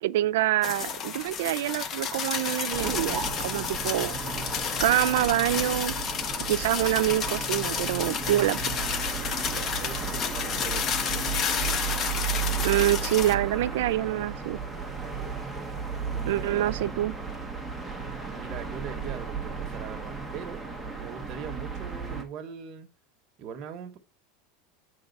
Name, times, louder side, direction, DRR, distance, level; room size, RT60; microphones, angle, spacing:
voice 1, 0.0-4.2 4.8-5.9 6.5-8.6 12.6-14.6 16.3-17.1, right 14 dB, 75° right, 0.4 m, -26 dB
sound 1, 0.6-13.3, left 7 dB, 30° left, 0.7 m, -31 dB
sound 2, 2.7-22.2, right 5 dB, ahead, 1.2 m, -34 dB
voice 2, 9.3-11.4 16.1-16.4 18.2-20.6 20.9-22.9 23.4-24.0, right 7 dB, 35° right, 1.2 m, -41 dB
7.9 x 3.7 x 5.3 m
supercardioid pair, 160°, 0 cm